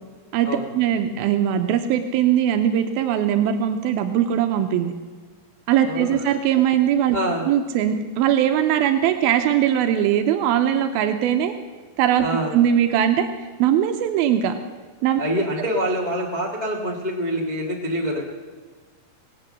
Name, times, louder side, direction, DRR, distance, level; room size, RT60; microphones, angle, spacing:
voice 1, 0.7-4.9 5.7-7.2 7.5-11.5 12.0-12.3 12.5-13.3 13.6-14.6 15.0-15.2, right 10 dB, 85° right, 7 dB, 2.6 m, -20 dB
voice 2, 5.8-6.3 7.1-7.4 12.2-12.5 15.2-18.2, equal, 75° left, -1 dB, 0.4 m, -25 dB
18.5 x 8.6 x 7.4 m, 1.5 s
omnidirectional pair, 4.2 m